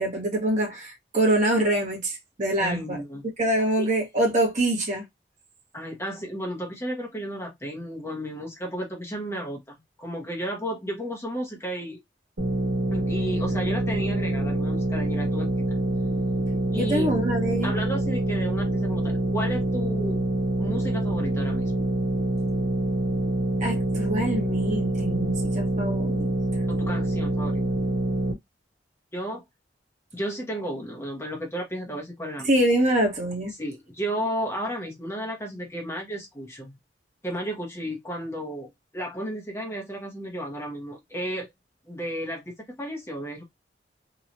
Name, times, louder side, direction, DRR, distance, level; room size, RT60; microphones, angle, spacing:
voice 1, 0.0-3.0 3.4-5.0 16.8-17.7 23.6-26.3 32.4-33.5, right 1 dB, 40° right, 1.1 m, -25 dB
voice 2, 2.6-3.2 3.8-3.9 5.7-12.0 12.9-15.5 16.7-17.2 17.6-20.2 20.6-21.8 26.7-27.6 29.1-29.4 30.1-32.5 33.5-36.8 37.2-41.5 41.8-43.4, equal, 15° left, 0.8 m, -33 dB
sound 1, 12.4-28.3, right 1 dB, 80° right, 1.3 m, -26 dB
2.9 x 2.3 x 2.5 m
head